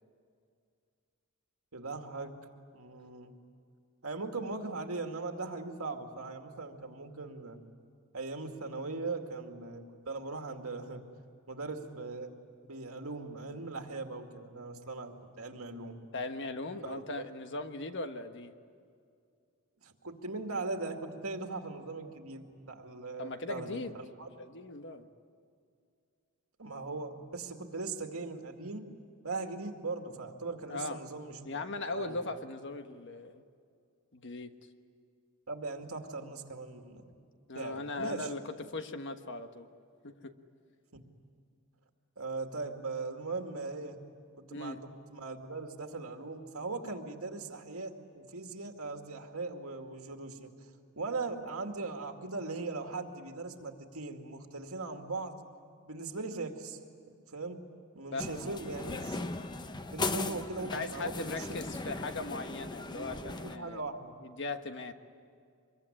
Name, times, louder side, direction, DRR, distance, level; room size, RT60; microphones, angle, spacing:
voice 1, 1.7-2.3 2.7-3.3 4.0-7.6 8.1-11.0 11.5-12.4 12.6-16.0 16.8-17.2 19.8-24.3 26.6-28.9 29.2-32.2 35.5-37.1 37.5-38.3 40.9-41.0 42.2-44.0 44.4-50.5 51.0-55.4 55.9-56.8 57.1-57.6 57.9-59.3 59.9-61.6 63.2-64.1, right 3 dB, 80° right, 4 dB, 2.3 m, -39 dB
voice 2, 16.1-18.5 23.2-23.9 24.4-25.1 30.7-31.0 31.4-33.3 34.1-34.5 37.5-39.7 40.0-40.3 44.5-44.8 58.1-59.0 60.6-63.8 64.2-64.9, left 3 dB, 60° left, 8 dB, 1.3 m, -39 dB
sound 1, 58.2-63.6, left 2 dB, 20° left, 0.8 m, -38 dB
25.0 x 22.5 x 9.9 m, 2.3 s
head